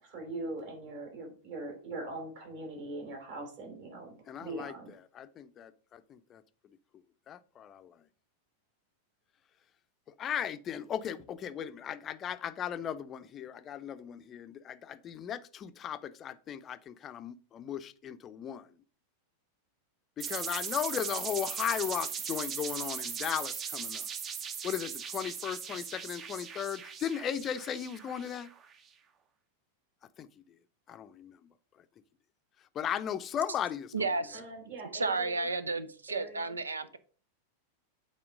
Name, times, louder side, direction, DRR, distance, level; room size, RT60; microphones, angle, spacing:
voice 1, 0.0-4.9 34.3-35.5 36.1-36.6, right 2 dB, 50° right, 4.5 m, -42 dB
voice 2, 4.3-4.7 5.1-6.4 7.3-8.0 10.2-18.7 20.2-24.1 24.6-28.5 30.2-30.6 30.9-31.5 32.7-34.1, left 9 dB, 30° left, 0.6 m, -36 dB
sound 1, 20.2-28.7, right 7 dB, 30° right, 0.8 m, -39 dB
voice 3, 33.9-34.4 34.9-37.0, right 3 dB, 75° right, 0.7 m, -32 dB
8.6 x 4.3 x 5.1 m
figure-of-eight pair, 90°, 0 cm